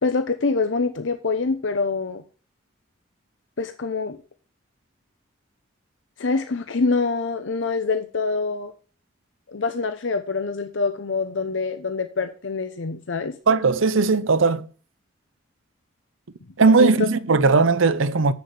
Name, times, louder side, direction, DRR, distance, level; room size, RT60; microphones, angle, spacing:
voice 1, 0.0-2.2 3.6-4.2 6.2-8.7 9.5-13.3 16.8-17.1, left 4 dB, 75° left, 0.7 m, -25 dB
voice 2, 13.5-14.7 16.6-18.3, right 4 dB, 90° right, 0.7 m, -18 dB
6.9 x 6.8 x 7.8 m
head